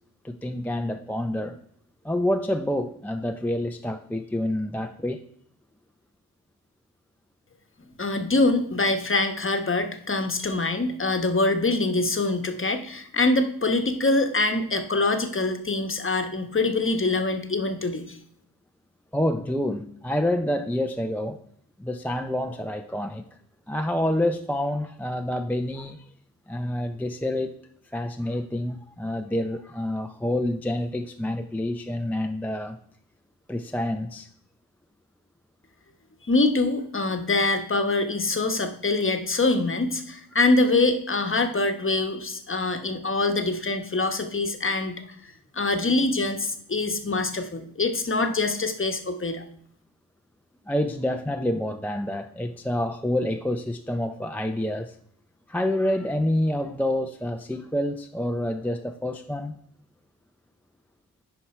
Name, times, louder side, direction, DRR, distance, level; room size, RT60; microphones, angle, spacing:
voice 1, 0.2-1.6 2.0-5.2 19.1-21.4 21.8-23.2 23.7-26.1 26.5-27.6 27.9-32.8 33.5-34.3 50.7-55.0 55.5-59.6, left 1 dB, 5° left, 6 dB, 0.4 m, -28 dB
voice 2, 8.0-18.2 36.3-49.4, left 2 dB, 30° left, 6 dB, 1.0 m, -24 dB
10.5 x 4.7 x 4.3 m, 0.65 s
cardioid pair, 70°, 41 cm